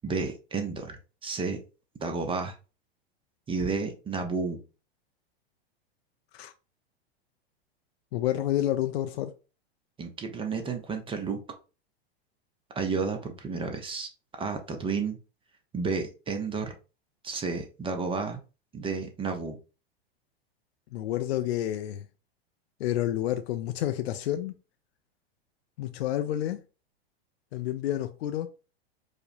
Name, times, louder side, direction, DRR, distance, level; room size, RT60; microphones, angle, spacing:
voice 1, 0.0-1.6 2.0-2.6 3.5-4.6 10.0-11.4 12.8-14.1 14.4-15.2 15.7-16.7 17.2-18.4 18.7-19.6, right 4 dB, 15° right, 0.5 m, -31 dB
voice 2, 8.1-9.3 20.9-22.1 22.8-24.5 25.8-26.6 27.5-28.5, left 12 dB, 75° left, 0.5 m, -29 dB
4.8 x 2.0 x 2.6 m
hypercardioid pair, 105°, 31 cm